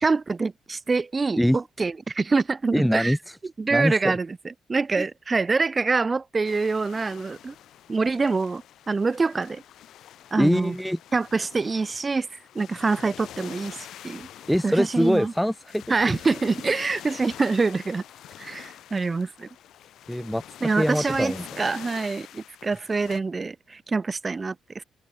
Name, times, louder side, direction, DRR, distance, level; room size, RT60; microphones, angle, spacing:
voice 1, 0.0-3.2 3.6-4.4 4.7-7.5 7.9-9.6 10.3-10.8 11.1-12.3 12.5-14.3 14.6-15.3 15.9-18.0 18.4-19.5 20.6-24.8, right 4 dB, 30° right, 0.5 m, -25 dB
voice 2, 2.7-3.4 3.7-4.2 5.0-5.1 10.4-11.0 14.5-16.2 20.1-21.5, equal, ahead, 1.6 m, -24 dB
sound 1, 6.4-23.2, left 11 dB, 75° left, 2.3 m, -45 dB
open air
cardioid pair, 90°, 0 cm